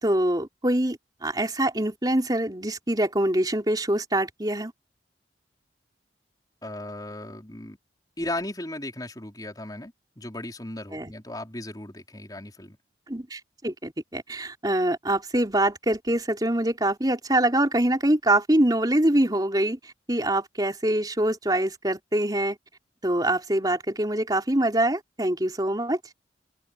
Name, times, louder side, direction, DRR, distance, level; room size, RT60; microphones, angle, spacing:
voice 1, 0.0-4.7 10.9-11.1 13.1-19.8 20.1-22.6 23.0-26.0, right 1 dB, 20° right, 3.6 m, -24 dB
voice 2, 6.6-7.8 8.2-12.8, left 1 dB, 20° left, 4.3 m, -36 dB
open air
head